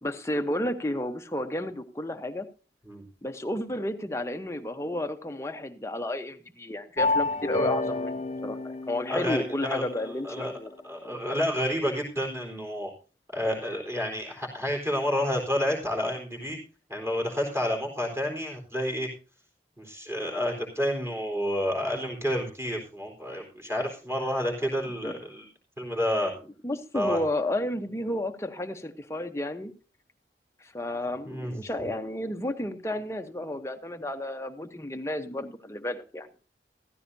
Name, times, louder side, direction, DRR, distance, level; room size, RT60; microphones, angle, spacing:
voice 1, 0.0-2.5 3.2-10.7 11.0-11.2 25.0-25.1 26.6-29.7 30.6-36.3, left 1 dB, 15° left, 7 dB, 0.9 m, -32 dB
sound 1, 7.0-9.9, left 2 dB, 40° left, 0.6 m, -29 dB
voice 2, 9.1-10.5 10.8-12.9 13.3-16.6 16.9-19.1 19.8-25.5 25.8-26.3 26.9-27.2 31.2-31.6, equal, 15° right, 0 dB, 4.0 m, -29 dB
15.0 x 14.0 x 2.7 m, 0.34 s
head